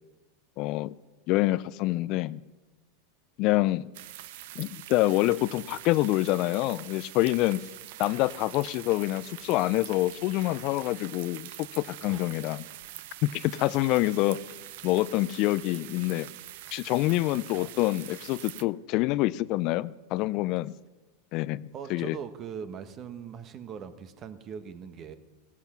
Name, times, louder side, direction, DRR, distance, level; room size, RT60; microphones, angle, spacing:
voice 1, 0.6-0.9 1.3-2.4 3.4-3.9 4.6-7.6 8.0-12.6 13.2-14.4 14.8-16.3 16.7-20.7 21.3-22.2, left 18 dB, 50° left, 19 dB, 0.4 m, -26 dB
sound 1, 3.9-18.6, right 14 dB, 65° right, 0.7 m, -44 dB
voice 2, 21.7-25.2, right 7 dB, 40° right, 10 dB, 1.3 m, -41 dB
15.5 x 13.5 x 5.9 m, 1.2 s
hypercardioid pair, 95°, 0 cm